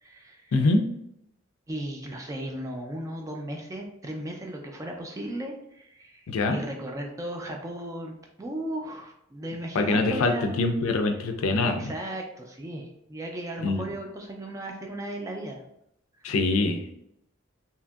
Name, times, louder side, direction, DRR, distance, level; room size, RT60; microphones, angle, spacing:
voice 1, 0.0-0.5 1.7-10.6 11.6-15.6 16.2-16.3, right 1 dB, 15° right, 1 dB, 0.3 m, -36 dB
voice 2, 0.5-0.8 6.3-6.6 9.7-11.9 13.6-13.8 16.2-16.9, left 3 dB, 85° left, 5 dB, 0.4 m, -24 dB
2.8 x 2.5 x 2.3 m, 0.76 s
head